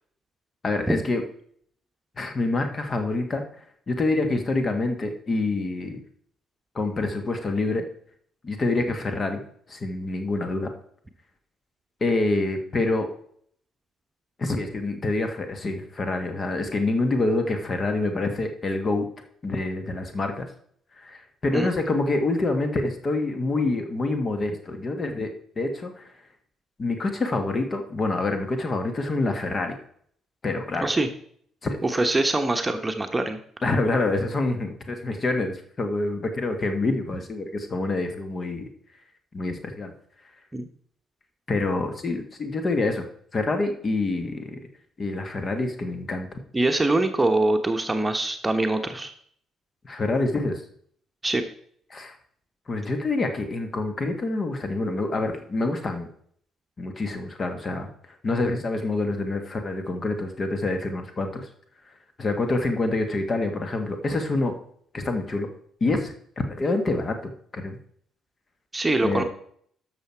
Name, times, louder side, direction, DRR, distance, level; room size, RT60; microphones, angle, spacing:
voice 1, 0.6-1.2 2.2-3.4 3.9-6.0 6.8-7.8 8.4-9.4 9.7-10.7 12.0-13.1 14.4-19.1 19.4-20.5 21.0-26.1 26.8-29.8 30.4-30.9 31.6-31.8 33.6-38.7 39.3-39.9 41.5-43.0 43.3-44.6 45.0-46.4 49.8-50.6 51.9-52.1 52.7-56.1 56.8-57.9 58.2-61.5 62.2-64.5 64.9-65.5 65.8-66.1 66.5-67.8 69.0-69.2, left 2 dB, 35° left, 5 dB, 1.8 m, -26 dB
voice 2, 31.8-33.4 40.5-40.7 46.5-49.1 51.2-51.4 68.7-69.2, right 2 dB, 15° right, 6 dB, 1.1 m, -23 dB
12.5 x 6.4 x 4.6 m, 0.62 s
figure-of-eight pair, 45°, 0 cm